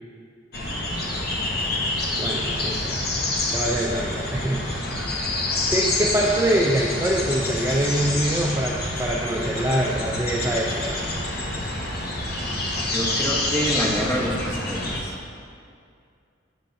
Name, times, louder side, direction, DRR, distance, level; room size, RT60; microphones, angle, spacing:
sound 1, 0.5-15.0, left 2 dB, 50° left, 0.9 m, -27 dB
voice 1, 2.2-3.0 3.5-4.6 5.7-11.0, right 1 dB, 15° right, -3 dB, 0.3 m, -24 dB
voice 2, 12.9-15.1, equal, 15° left, -4 dB, 1.0 m, -27 dB
8.2 x 7.3 x 2.6 m, 2.3 s
head